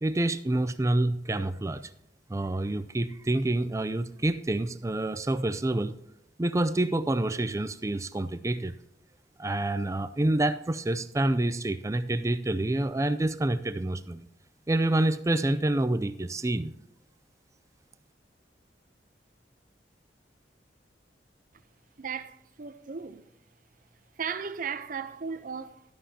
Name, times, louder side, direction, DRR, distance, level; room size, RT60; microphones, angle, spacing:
voice 1, 0.0-1.9 2.3-6.0 6.4-8.7 9.4-14.2 14.7-16.7, right 1 dB, 20° right, 0.4 m, -27 dB
voice 2, 22.0-23.2 24.2-25.8, right 6 dB, 50° right, 0.7 m, -36 dB
12.5 x 11.0 x 2.8 m
head